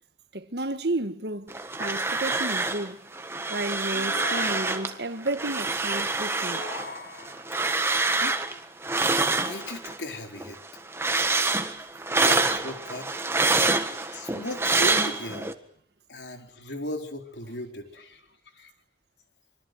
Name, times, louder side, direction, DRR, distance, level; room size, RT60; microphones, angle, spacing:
voice 1, 0.3-1.5 1.8-3.0 3.5-6.6, right 2 dB, 70° right, 1.6 m, -32 dB
sound 1, 1.5-2.9 3.1-4.9 5.3-10.0 10.4-15.5, right 3 dB, 15° right, 1.6 m, -26 dB
sound 2, 3.9-5.2 6.3-7.6, left 2 dB, 55° left, 3.5 m, -40 dB
voice 2, 8.1-8.5 9.2-10.6 12.2-13.1 13.9-15.6 16.1-18.7, left 1 dB, 85° left, 4.4 m, -37 dB
26.0 x 24.0 x 7.9 m
head